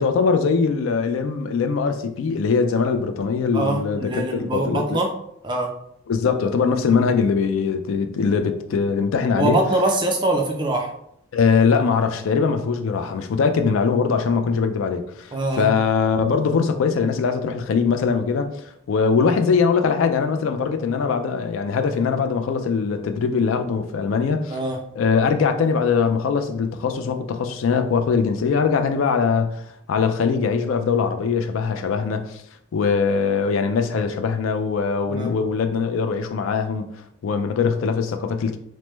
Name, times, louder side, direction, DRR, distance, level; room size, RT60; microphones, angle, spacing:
voice 1, 0.0-5.0 6.1-9.6 11.3-18.5 18.9-24.6 25.0-29.6 29.9-32.4 32.7-36.9 37.2-38.6, left 5 dB, 70° left, 0.3 m, -21 dB
voice 2, 3.5-5.1 5.4-5.7 9.4-10.9 15.3-15.7 24.5-24.8 35.1-35.3, right 2 dB, 20° right, 0.4 m, -23 dB
3.2 x 2.1 x 3.0 m
head